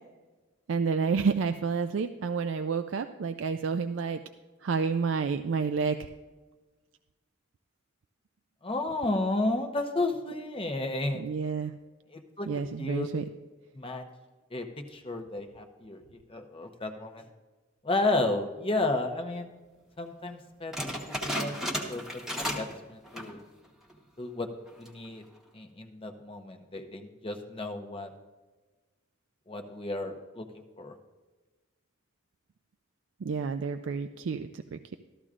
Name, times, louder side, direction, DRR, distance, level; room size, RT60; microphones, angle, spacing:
voice 1, 0.7-4.2 4.6-6.1 11.1-11.7 12.5-13.2 33.2-35.0, right 5 dB, 65° right, 7 dB, 0.4 m, -29 dB
voice 2, 8.6-11.2 12.1-12.5 12.8-13.1 13.7-14.1 14.5-17.3 17.8-19.5 20.0-20.7 21.1-21.6 21.9-22.0 22.4-23.4 24.2-24.5 24.8-25.2 25.5-28.1 29.5-30.9, left 2 dB, 25° left, 5 dB, 0.8 m, -32 dB
sound 1, 20.7-22.8 23.0-23.4 23.9-24.0 24.7-25.1, equal, 5° right, 1.1 m, -34 dB
13.5 x 13.5 x 2.5 m, 1.3 s
head